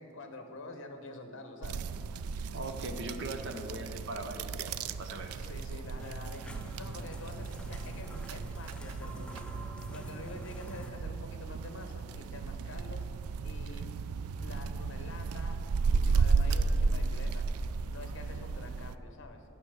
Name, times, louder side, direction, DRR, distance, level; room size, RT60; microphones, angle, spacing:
voice 1, 0.0-1.9 5.3-9.5 9.9-13.1 13.4-13.9 14.4-17.5 17.9-19.4, left 2 dB, 55° left, 6 dB, 1.1 m, -47 dB
sound 1, 1.6-18.9, right 4 dB, 80° right, 0.4 m, -34 dB
voice 2, 2.5-5.4 12.6-12.7, right 2 dB, 55° right, 6 dB, 0.9 m, -40 dB
sound 2, 6.0-10.9, equal, 5° left, 0.6 m, -46 dB
9.5 x 6.1 x 8.0 m, 2.6 s
head